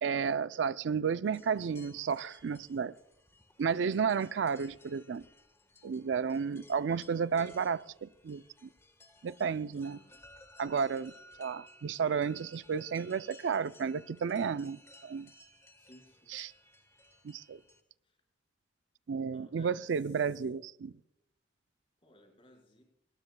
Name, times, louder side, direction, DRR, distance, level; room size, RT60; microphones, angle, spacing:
voice 1, 0.0-2.9 3.6-5.2 5.8-8.7 9.2-10.0 10.6-11.1 11.4-15.3 16.3-16.5 17.2-17.6 19.1-20.9, right 6 dB, 85° right, 0.4 m, -32 dB
sound 1, 1.2-17.8, left 1 dB, 15° left, 1.3 m, -58 dB
voice 2, 3.8-4.2 9.7-10.2 15.8-16.4 18.0-18.2 19.3-20.4 22.0-22.8, left 1 dB, 30° left, 4.8 m, -61 dB
21.0 x 19.5 x 2.2 m
head